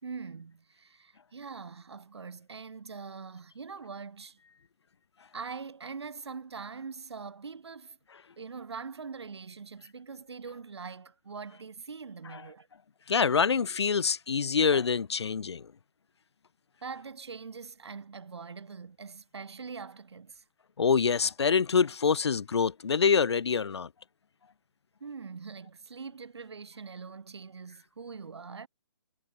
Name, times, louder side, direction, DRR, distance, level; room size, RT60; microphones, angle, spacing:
voice 1, 0.0-4.4 5.3-8.0 8.4-12.7 16.8-20.4 25.0-28.7, right 5 dB, 70° right, 3.6 m, -43 dB
voice 2, 13.1-15.6 20.8-23.9, left 6 dB, 70° left, 0.9 m, -25 dB
hypercardioid pair, 165°, 15 cm